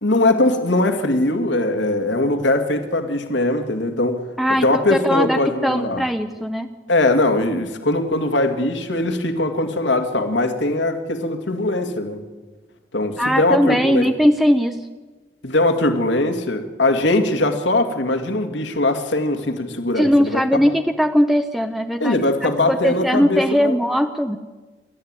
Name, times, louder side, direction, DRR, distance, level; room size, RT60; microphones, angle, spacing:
voice 1, 0.0-4.2 4.6-6.0 6.9-12.2 12.9-14.1 15.4-20.7 22.0-23.8, left 2 dB, 85° left, 6 dB, 2.1 m, -21 dB
voice 2, 4.4-6.7 13.2-14.9 19.9-24.4, equal, ahead, 7 dB, 0.6 m, -19 dB
28.5 x 12.5 x 8.9 m, 1.3 s
head